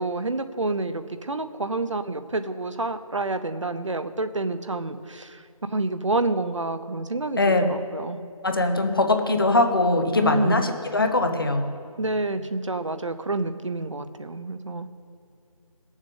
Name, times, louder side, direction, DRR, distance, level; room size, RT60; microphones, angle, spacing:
voice 1, 0.0-5.4 5.7-8.2 10.2-10.7 12.0-14.9, right 2 dB, 55° right, 10 dB, 0.8 m, -28 dB
voice 2, 7.4-7.7 8.4-11.6, left 2 dB, 40° left, 5 dB, 1.1 m, -21 dB
18.0 x 7.4 x 6.4 m, 2.3 s
figure-of-eight pair, 170°, 19 cm